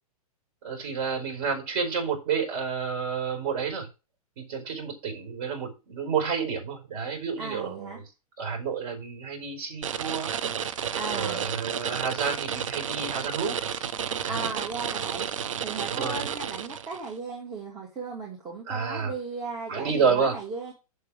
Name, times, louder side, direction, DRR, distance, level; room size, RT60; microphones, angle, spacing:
voice 1, 0.6-3.9 4.4-8.0 8.4-10.3 11.0-13.6 14.2-14.5 15.9-16.3 18.7-19.1 19.7-20.4, right 5 dB, 40° right, 4 dB, 4.9 m, -30 dB
voice 2, 7.4-8.0 10.9-11.4 14.3-15.3 15.6-20.7, right 3 dB, 20° right, -2 dB, 2.5 m, -36 dB
sound 1, 9.8-17.1, right 8 dB, 55° right, 0.8 m, -32 dB
7.5 x 6.7 x 5.1 m, 0.28 s
figure-of-eight pair, 105°, 19 cm